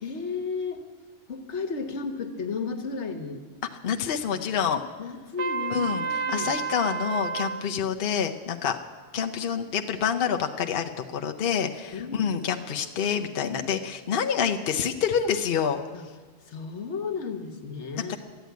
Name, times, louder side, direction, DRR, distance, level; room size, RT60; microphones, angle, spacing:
voice 1, 0.0-0.8 1.3-3.4 4.3-4.4 5.0-6.6 11.9-12.5 15.9-16.0 16.4-18.2, left 5 dB, 80° left, 7 dB, 1.4 m, -33 dB
voice 2, 3.8-4.8 5.7-8.8 9.1-15.8 18.1-18.2, left 7 dB, 60° left, 4 dB, 0.9 m, -27 dB
Trumpet, 5.4-7.6, right 5 dB, 85° right, 1.1 m, -30 dB
13.0 x 9.3 x 9.3 m, 1.4 s
omnidirectional pair, 1.2 m